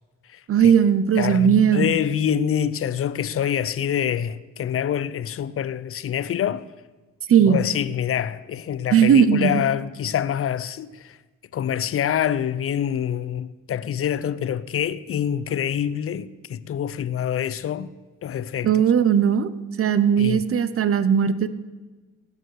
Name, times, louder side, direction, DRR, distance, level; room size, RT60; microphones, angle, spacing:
voice 1, 0.5-1.9 7.3-7.6 8.9-9.6 18.6-19.5 19.8-21.5, right 8 dB, 45° right, 0.9 m, -18 dB
voice 2, 1.2-6.6 7.5-11.1 11.5-17.9 18.2-18.7 20.2-20.4, left 9 dB, 45° left, 0.7 m, -26 dB
18.0 x 6.8 x 6.6 m
cardioid pair, 90°, 30 cm